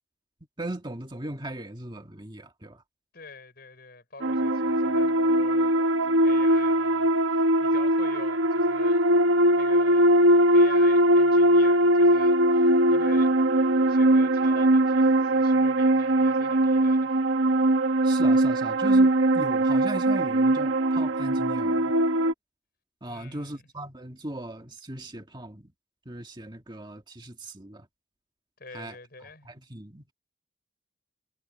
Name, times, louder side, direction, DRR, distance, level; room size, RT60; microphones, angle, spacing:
voice 1, 0.6-2.8 18.0-21.9 23.0-25.7 26.1-27.9 28.7-29.0 29.4-30.1, right 1 dB, 25° right, 2.0 m, -38 dB
voice 2, 3.1-5.7 6.0-9.0 9.5-10.2 10.5-13.3 13.8-17.2 23.0-23.6 28.6-29.5, left 3 dB, 50° left, 6.3 m, -46 dB
sound 1, 4.2-22.3, right 1 dB, 80° right, 1.1 m, -21 dB
head